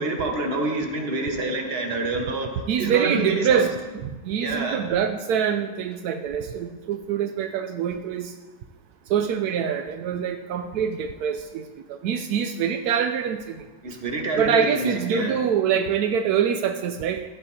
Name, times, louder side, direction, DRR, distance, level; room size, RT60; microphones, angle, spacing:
voice 1, 0.0-3.7 4.4-4.8 13.8-15.4, right 2 dB, 35° right, 2 dB, 1.2 m, -27 dB
voice 2, 2.7-8.3 9.1-13.6 14.4-17.2, right 8 dB, 80° right, 6 dB, 0.8 m, -25 dB
14.5 x 10.5 x 2.8 m, 1.3 s
omnidirectional pair, 2.2 m